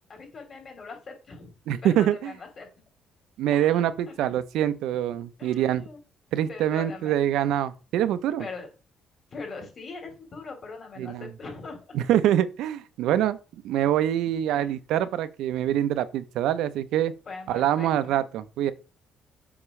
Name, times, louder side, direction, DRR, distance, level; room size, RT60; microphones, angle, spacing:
voice 1, 0.1-1.5 1.8-2.7 3.5-4.2 5.4-6.0 6.5-7.2 8.4-8.7 9.3-11.8 14.5-14.8 17.2-18.2, left 4 dB, 40° left, 3.3 m, -41 dB
voice 2, 1.7-2.1 3.4-5.8 6.3-8.4 11.0-11.2 11.9-13.4 13.6-17.1 17.5-18.7, right 11 dB, 90° right, 0.6 m, -25 dB
7.2 x 6.0 x 3.2 m
cardioid pair, 110°, 0 cm